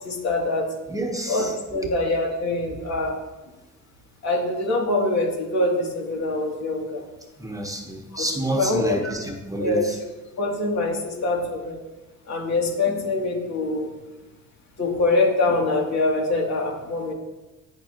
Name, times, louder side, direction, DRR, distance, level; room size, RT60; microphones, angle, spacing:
voice 1, 0.0-0.7 1.3-1.4 1.7-3.1 4.2-7.0 8.1-8.2 8.5-9.1 9.6-9.9 10.4-11.8 12.3-13.9 14.8-17.1, left 2 dB, 65° left, -1 dB, 2.7 m, -24 dB
voice 2, 0.9-1.5 7.4-10.0, right 1 dB, 10° right, 2 dB, 1.1 m, -29 dB
16.0 x 6.0 x 3.0 m, 1.1 s
cardioid pair, 90°, 30 cm